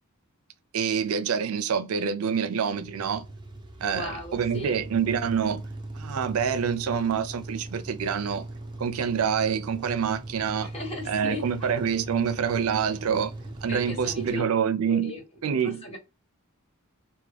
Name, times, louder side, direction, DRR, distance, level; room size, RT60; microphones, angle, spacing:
voice 1, 0.7-3.2 3.8-5.6 5.9-8.5 8.8-10.7 11.1-13.3 13.6-15.1 15.4-15.8, right 7 dB, 90° right, 0.4 m, -26 dB
sound 1, 2.7-14.3, right 2 dB, 20° right, 0.7 m, -39 dB
voice 2, 3.9-4.8 10.6-11.4 13.7-14.4 14.9-15.2 15.6-16.0, left 1 dB, 30° left, 1.3 m, -36 dB
3.4 x 2.2 x 3.3 m
head